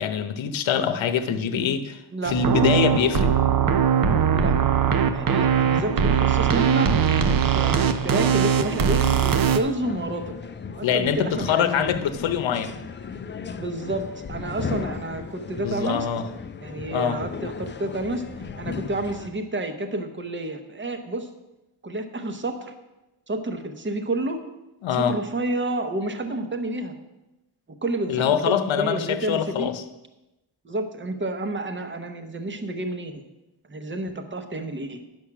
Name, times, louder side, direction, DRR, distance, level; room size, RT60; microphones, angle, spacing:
voice 1, 0.0-3.3 10.8-12.7 15.6-16.2 16.9-17.2 24.8-25.2 28.1-29.8, left 8 dB, 85° left, 10 dB, 0.9 m, -24 dB
sound 1, 2.3-9.6, right 7 dB, 50° right, 0.6 m, -20 dB
voice 2, 5.1-6.9 7.2-10.3 10.8-11.9 13.5-16.1 16.6-18.2 18.6-21.3 21.8-22.7 23.3-24.4 24.9-26.9 27.8-29.7 30.6-33.2 33.7-35.0, right 2 dB, 25° right, 7 dB, 0.9 m, -30 dB
sound 2, 9.8-19.3, left 5 dB, 25° left, 0.4 m, -36 dB
10.0 x 6.2 x 5.9 m, 0.98 s
wide cardioid pair, 160°, 45 cm